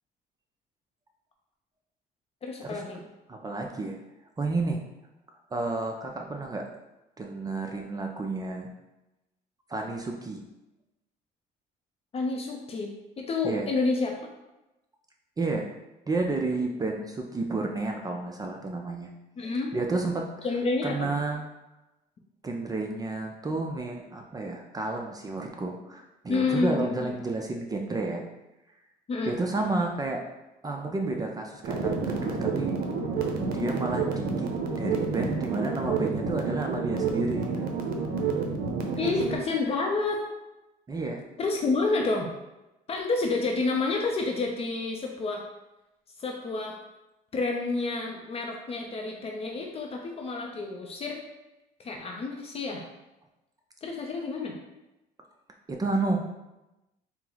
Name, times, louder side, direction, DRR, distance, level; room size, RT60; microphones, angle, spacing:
voice 1, 2.4-3.0 12.1-14.2 19.4-19.7 20.4-21.1 26.3-27.1 29.1-29.4 38.9-40.2 41.4-42.3 42.9-45.4 46.2-46.8 47.3-51.2 51.8-52.9 53.8-54.6, left 3 dB, 35° left, 1 dB, 0.5 m, -29 dB
voice 2, 3.3-4.0 4.4-4.8 5.5-6.7 7.2-8.7 9.7-10.4 13.4-13.7 15.4-15.7 16.1-19.1 19.4-20.3 20.8-21.4 22.4-28.2 29.2-30.2 30.6-32.8 33.5-34.5 34.8-37.7 39.0-39.1 40.9-41.2 55.7-56.2, right 3 dB, 20° right, 2 dB, 0.4 m, -31 dB
sound 1, 31.6-39.4, right 4 dB, 65° right, 0.7 m, -29 dB
4.3 x 2.0 x 3.8 m, 0.97 s
cardioid pair, 110°, 17 cm